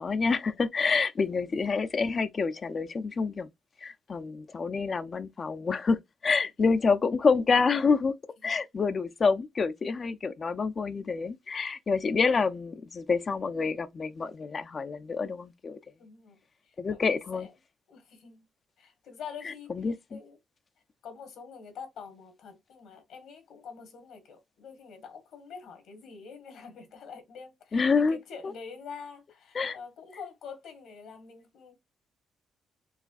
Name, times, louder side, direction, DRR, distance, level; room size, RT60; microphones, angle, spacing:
voice 1, 0.0-3.5 3.8-8.1 8.4-15.8 16.8-17.5 19.4-20.2 27.7-28.2 28.4-28.5 29.5-29.8, left 4 dB, 40° left, 0.5 m, -27 dB
voice 2, 16.0-16.4 16.6-17.5 17.9-18.4 18.8-19.7 20.1-20.4 21.0-31.7, left 6 dB, 80° left, 1.6 m, -46 dB
4.8 x 3.1 x 2.5 m
cardioid pair, 90°, 0 cm